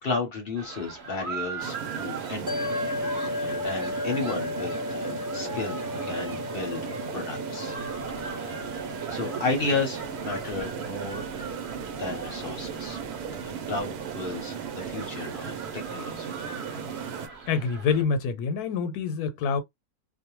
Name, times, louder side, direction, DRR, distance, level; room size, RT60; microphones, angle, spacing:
voice 1, 0.0-2.7 3.3-7.7 8.2-8.7 9.1-11.4 12.0-13.0 13.4-16.3, left 3 dB, 50° left, 0.7 m, -33 dB
sound 1, 0.6-18.0, right 4 dB, 50° right, 1.1 m, -41 dB
sound 2, 1.6-17.3, right 7 dB, 80° right, 1.1 m, -36 dB
sound 3, 2.5-15.0, left 2 dB, 15° right, 0.7 m, -36 dB
voice 2, 17.5-19.6, left 5 dB, 85° left, 1.1 m, -26 dB
2.5 x 2.1 x 2.9 m
omnidirectional pair, 1.6 m